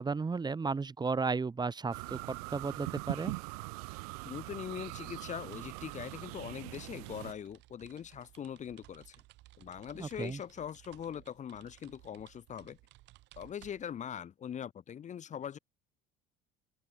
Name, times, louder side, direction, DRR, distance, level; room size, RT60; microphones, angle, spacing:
voice 1, 0.0-3.3 10.0-10.4, right 4 dB, 20° right, 2.4 m, -34 dB
sound 1, 1.9-7.3, right 27 dB, 85° right, 1.0 m, -42 dB
voice 2, 4.2-9.2 9.6-12.8 13.4-15.6, left 9 dB, 40° left, 1.4 m, -42 dB
sound 2, 4.9-14.1, right 18 dB, 65° right, 7.8 m, -59 dB
open air
supercardioid pair, 95°, 19 cm